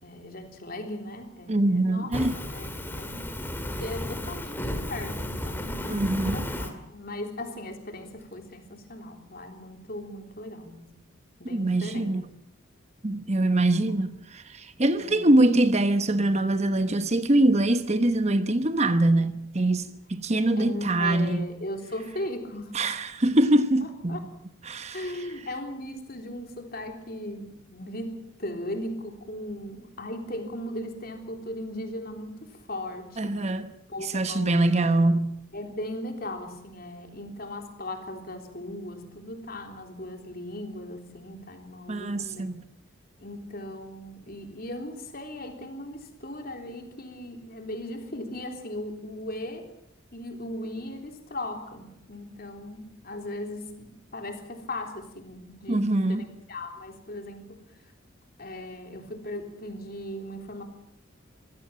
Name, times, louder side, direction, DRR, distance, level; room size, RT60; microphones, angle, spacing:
voice 1, 0.0-10.9 11.4-12.2 15.0-15.3 20.6-22.8 24.1-24.2 24.9-33.4 33.9-34.6 35.5-42.6 43.2-49.7 50.1-57.6 58.4-60.6, left 1 dB, 45° left, 3.6 m, -38 dB
voice 2, 1.5-2.4 5.9-6.4 11.5-12.2 13.0-21.5 22.7-24.3 24.6-25.2 33.2-35.3 41.9-42.6 55.7-56.3, right 1 dB, 35° right, 1.0 m, -24 dB
Fire, 2.1-6.7, left 1 dB, 10° left, 2.2 m, -33 dB
24.5 x 16.5 x 7.5 m
head